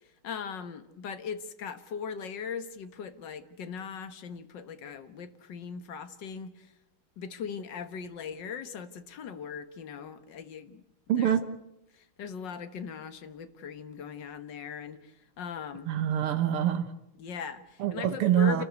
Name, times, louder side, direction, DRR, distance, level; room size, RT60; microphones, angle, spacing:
voice 1, 0.2-6.7 7.2-10.8 11.2-11.3 11.9-15.9 17.2-18.6, left 6 dB, 55° left, 1.9 m, -39 dB
voice 2, 11.1-11.5 15.9-16.9 17.8-18.6, right 10 dB, 85° right, 2.1 m, -25 dB
28.5 x 13.5 x 9.4 m
omnidirectional pair, 2.4 m